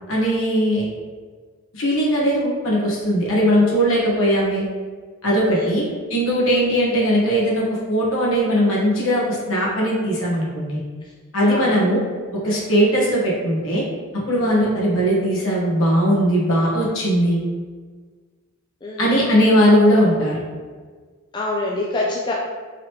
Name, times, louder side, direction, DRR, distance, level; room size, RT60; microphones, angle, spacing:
voice 1, 0.1-0.8 1.7-4.6 5.2-5.8 6.1-10.8 11.3-12.0 12.4-13.8 14.3-17.4 19.0-20.4, equal, 70° left, -5 dB, 1.2 m, -19 dB
voice 2, 11.4-11.8 14.4-14.6 18.8-19.2 21.3-22.3, left 2 dB, 20° left, -3 dB, 0.3 m, -27 dB
3.9 x 3.0 x 3.1 m, 1.5 s
head